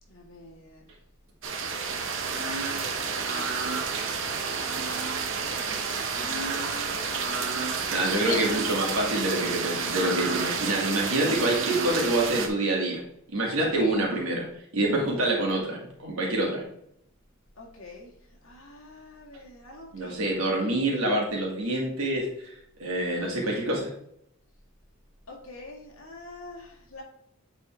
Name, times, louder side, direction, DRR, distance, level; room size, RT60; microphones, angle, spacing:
voice 1, 0.1-0.8 1.8-3.3 5.2-7.4 8.0-8.6 13.6-14.0 17.6-18.1 18.4-20.3 23.2-23.6 25.3-27.0, left 2 dB, 75° left, -2 dB, 2.0 m, -43 dB
sound 1, 1.4-12.5, right 5 dB, 60° right, 0.9 m, -30 dB
voice 2, 7.9-13.0 13.3-14.4 14.7-16.6 19.9-22.5 22.8-23.9, right 1 dB, 80° right, -2 dB, 2.2 m, -26 dB
8.2 x 4.1 x 3.5 m, 0.72 s
head